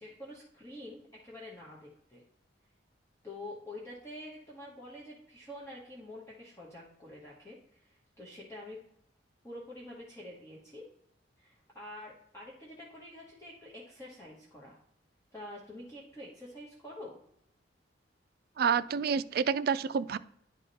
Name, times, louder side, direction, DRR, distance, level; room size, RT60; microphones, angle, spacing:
voice 1, 0.0-2.2 3.2-8.8 9.4-10.9 11.4-14.8 15.3-17.2, left 1 dB, 15° left, -5 dB, 1.2 m, -47 dB
voice 2, 18.6-20.2, right 6 dB, 55° right, 14 dB, 0.3 m, -28 dB
10.5 x 3.6 x 4.1 m, 0.74 s
head